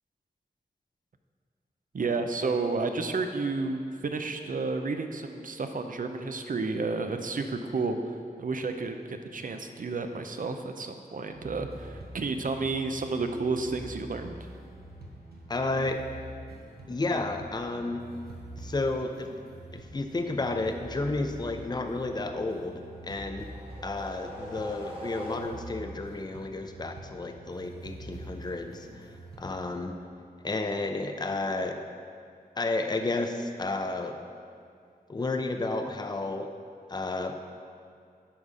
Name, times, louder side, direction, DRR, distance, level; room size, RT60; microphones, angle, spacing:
voice 1, 1.9-8.0 8.4-14.4, right 3 dB, 60° right, 6 dB, 0.6 m, -31 dB
sound 1, 11.3-29.5, right 1 dB, 75° right, 1.1 m, -46 dB
voice 2, 15.5-16.0 16.9-18.0 18.6-19.3 19.7-23.5 23.8-29.1 29.4-30.0 30.4-31.8 32.6-34.2 35.1-36.5 36.9-37.4, left 2 dB, 25° left, 6 dB, 0.5 m, -32 dB
sound 2, 22.8-25.9, equal, 35° right, 1.3 m, -43 dB
10.0 x 4.1 x 4.9 m, 2.3 s
wide cardioid pair, 60°, 16 cm